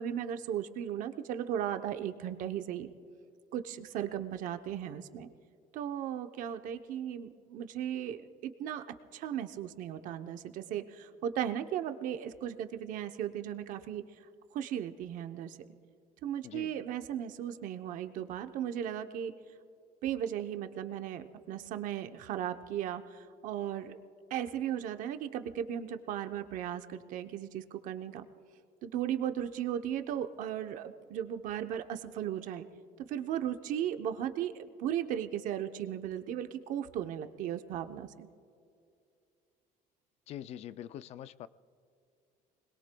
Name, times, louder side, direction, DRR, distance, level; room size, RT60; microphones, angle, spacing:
voice 1, 0.0-2.9 3.5-5.3 5.7-8.8 9.1-14.0 14.5-15.6 16.2-19.3 20.0-24.0 24.3-28.3 28.8-32.7 33.0-38.3, right 10 dB, 60° right, 0.8 m, -36 dB
voice 2, 16.4-16.8 40.3-41.5, left 11 dB, 45° left, 0.4 m, -44 dB
29.0 x 21.0 x 2.3 m
cardioid pair, 165°, 15 cm